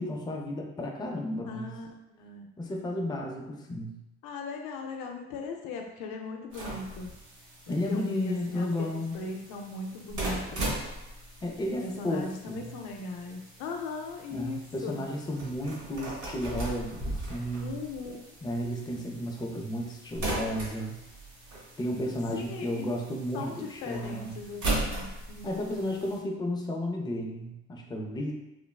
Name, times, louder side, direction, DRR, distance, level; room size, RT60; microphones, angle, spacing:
voice 1, 0.0-1.7 2.6-3.9 7.7-9.2 11.4-12.7 14.3-17.7 18.4-21.0 21.8-24.4 25.4-28.3, left 1 dB, 10° left, 0 dB, 0.5 m, -33 dB
voice 2, 1.4-2.5 4.2-7.1 7.7-10.8 11.8-15.1 17.6-18.3 22.3-22.9 23.3-25.6, left 3 dB, 65° left, 2 dB, 0.5 m, -39 dB
sound 1, 6.5-26.2, right 1 dB, 55° right, 1.1 m, -39 dB
3.1 x 2.0 x 2.2 m, 0.92 s
hypercardioid pair, 55°, 34 cm